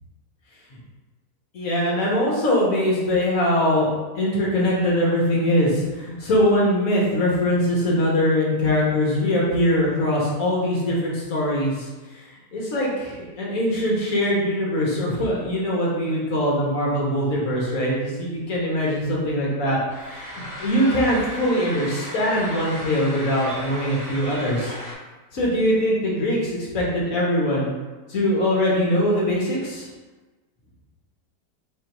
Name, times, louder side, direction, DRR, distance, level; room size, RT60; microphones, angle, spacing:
voice 1, 1.5-24.7 25.3-27.7 28.1-29.9, equal, 55° left, -4 dB, 1.4 m, -22 dB
sound 1, 19.9-24.9, equal, 15° right, 0.7 m, -35 dB
4.4 x 2.6 x 4.5 m, 1.2 s
omnidirectional pair, 1.9 m